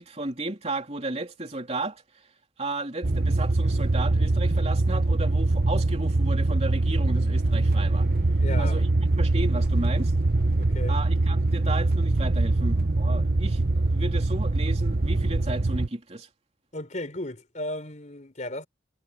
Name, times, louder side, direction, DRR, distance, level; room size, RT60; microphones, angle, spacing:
voice 1, 0.0-2.0 2.6-8.1 8.6-10.1 10.9-16.3, right 2 dB, 35° right, 3.1 m, -34 dB
sound 1, 3.0-15.9, right 2 dB, 50° right, 0.9 m, -23 dB
voice 2, 8.4-8.9 10.6-11.0 16.7-18.7, left 1 dB, 40° left, 4.3 m, -35 dB
head